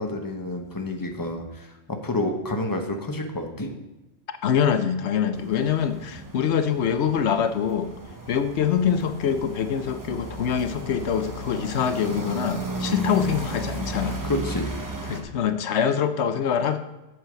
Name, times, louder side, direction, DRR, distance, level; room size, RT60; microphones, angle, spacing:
voice 1, 0.0-3.7 14.2-14.7, left 1 dB, 20° left, 3 dB, 1.1 m, -29 dB
voice 2, 4.4-7.9 8.3-14.2 15.1-16.8, left 8 dB, 85° left, 10 dB, 1.0 m, -24 dB
sound 1, 5.3-15.2, right 2 dB, 20° right, 1.0 m, -34 dB
8.0 x 7.8 x 5.1 m, 1.0 s
omnidirectional pair, 1.1 m